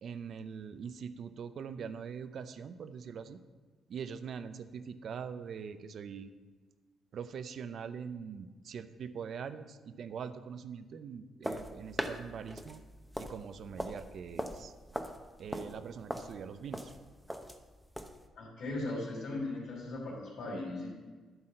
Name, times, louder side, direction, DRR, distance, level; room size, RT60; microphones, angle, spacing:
voice 1, 0.0-3.4 3.9-6.3 7.1-12.8 13.2-14.7 15.4-16.9, right 6 dB, 60° right, 11 dB, 0.6 m, -43 dB
sound 1, 11.4-18.2, equal, ahead, 0.8 m, -41 dB
voice 2, 18.3-20.9, left 2 dB, 70° left, -10 dB, 3.3 m, -38 dB
11.0 x 4.1 x 7.7 m, 1.4 s
cardioid pair, 90°, 0 cm